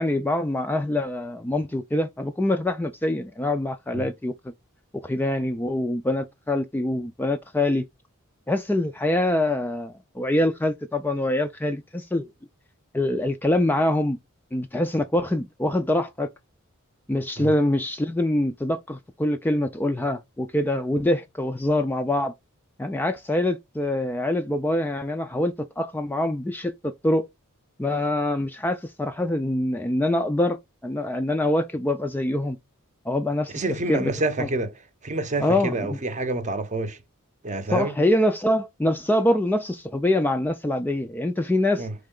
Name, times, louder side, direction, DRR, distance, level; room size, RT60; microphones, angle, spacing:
voice 1, 0.0-4.3 5.0-7.9 8.5-12.3 12.9-14.2 14.5-16.3 17.1-22.3 22.8-27.3 27.8-30.6 30.8-32.6 33.1-33.6 33.9-34.1 34.4-34.5 35.4-36.0 37.7-41.9, left 1 dB, 10° left, 0.3 m, -24 dB
voice 2, 33.5-37.0 37.4-38.0 41.8-41.9, right 2 dB, 35° right, 0.6 m, -28 dB
4.4 x 3.2 x 3.7 m
head